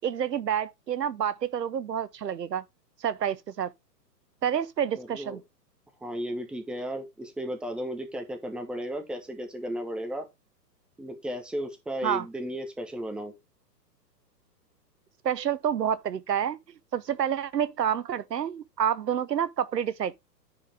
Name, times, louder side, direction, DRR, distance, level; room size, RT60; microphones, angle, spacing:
voice 1, 0.0-2.6 3.0-3.7 4.4-5.4 12.0-12.2 15.2-16.6 16.9-20.2, right 9 dB, 75° right, 0.8 m, -28 dB
voice 2, 4.9-5.4 6.0-10.3 11.0-13.3, equal, ahead, 1.1 m, -34 dB
10.0 x 4.7 x 3.4 m
figure-of-eight pair, 115°, 50 cm